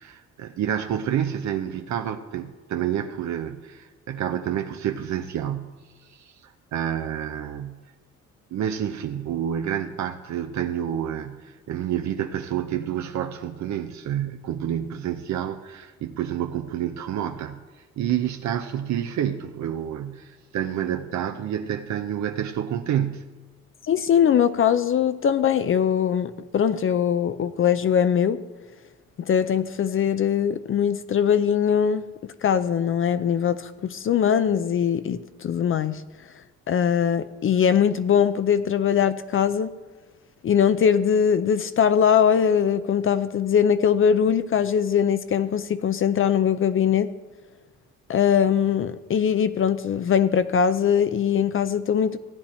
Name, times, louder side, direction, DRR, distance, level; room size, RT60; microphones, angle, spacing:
voice 1, 0.0-7.9 8.5-17.6 18.0-23.3, right 10 dB, 70° right, 6 dB, 0.7 m, -29 dB
voice 2, 23.9-28.4 29.2-36.0 36.7-39.7 40.4-47.1 48.1-52.2, left 8 dB, 45° left, 12 dB, 0.5 m, -21 dB
15.5 x 8.9 x 4.3 m, 1.3 s
cardioid pair, 90°, 30 cm